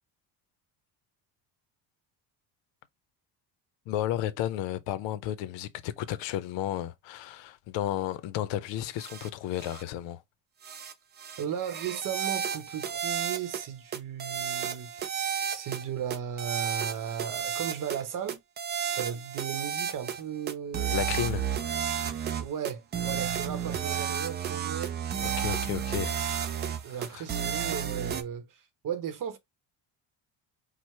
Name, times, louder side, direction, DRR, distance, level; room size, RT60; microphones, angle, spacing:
voice 1, 3.9-10.2 20.9-21.5 25.2-26.2 26.9-27.3, left 12 dB, 90° left, 0.6 m, -33 dB
sound 1, 9.0-9.3 9.6-9.8 10.6-10.9 11.2-13.7 13.9-15.8 16.1-18.0 18.3-20.2 20.5-28.2, right 8 dB, 25° right, 0.3 m, -32 dB
voice 2, 11.4-15.1 15.5-18.4 18.9-20.9 22.4-25.0 26.6-29.4, right 8 dB, 50° right, 0.8 m, -36 dB
4.7 x 2.0 x 4.2 m
cardioid pair, 155°, 43 cm